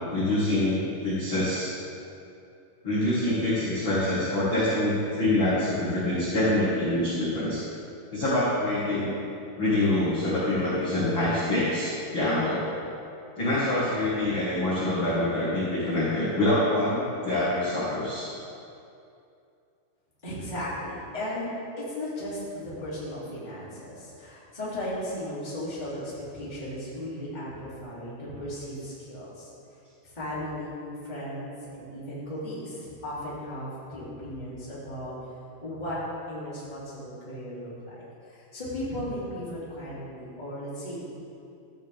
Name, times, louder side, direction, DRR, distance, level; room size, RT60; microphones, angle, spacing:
voice 1, 0.1-1.7 2.8-7.6 8.1-9.1 9.6-12.6 13.3-18.2, left 1 dB, 45° left, -10 dB, 1.6 m, -25 dB
voice 2, 20.2-21.5 21.8-29.5 30.0-35.1 35.6-36.0 36.3-41.1, left 1 dB, 15° left, -9 dB, 2.1 m, -36 dB
13.5 x 10.0 x 3.7 m, 2.6 s
omnidirectional pair, 5.5 m